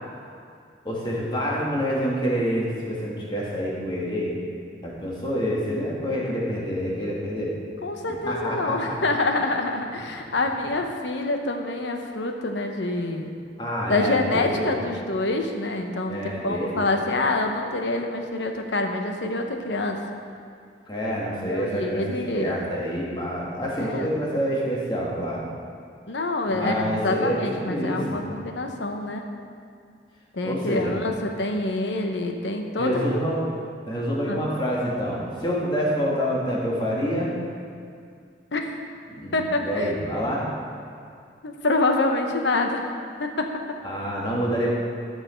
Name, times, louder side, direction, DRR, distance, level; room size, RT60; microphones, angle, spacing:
voice 1, 0.8-4.3 4.8-7.5 8.2-8.9 13.6-14.7 16.1-16.8 20.9-25.4 26.5-27.4 27.7-28.2 30.4-30.9 32.8-33.5 33.9-37.3 39.1-40.5 43.8-44.7, equal, 25° left, -5 dB, 1.8 m, -27 dB
voice 2, 7.8-13.3 13.9-20.0 21.4-22.5 23.8-24.1 26.1-29.2 30.3-33.2 34.3-34.4 38.5-38.8 39.3-39.9 41.4-42.9 43.2-43.5, left 2 dB, 85° left, 4 dB, 0.9 m, -26 dB
13.0 x 5.9 x 4.4 m, 2.3 s
head